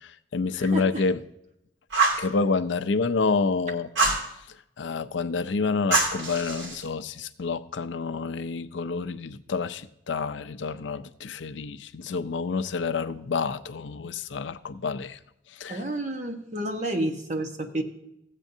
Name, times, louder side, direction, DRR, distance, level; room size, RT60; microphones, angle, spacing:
voice 1, 0.0-1.2 2.2-3.9 4.8-15.2 15.6-15.8, left 4 dB, 90° left, 12 dB, 0.5 m, -28 dB
voice 2, 0.5-1.0 15.7-17.8, right 1 dB, 40° right, 4 dB, 1.1 m, -30 dB
Fire, 1.9-2.3 4.0-4.3 5.9-6.8, right 3 dB, 85° right, 2.6 m, -24 dB
15.0 x 8.2 x 2.7 m, 0.80 s
head